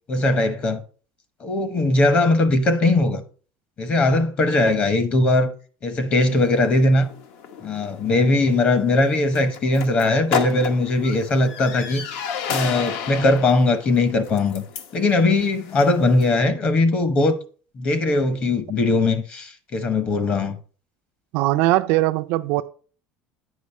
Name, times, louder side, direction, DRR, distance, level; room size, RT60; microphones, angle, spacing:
voice 1, 0.1-0.8 1.4-3.2 3.8-5.5 5.8-7.1 7.6-12.0 12.5-14.6 14.9-17.4 17.8-20.6, left 2 dB, 30° left, 0.9 m, -20 dB
sound 1, 6.3-16.4, left 6 dB, 65° left, 0.9 m, -33 dB
voice 2, 21.3-22.6, right 17 dB, 65° right, 0.4 m, -20 dB
8.4 x 5.2 x 4.3 m
cardioid pair, 165°, 4 cm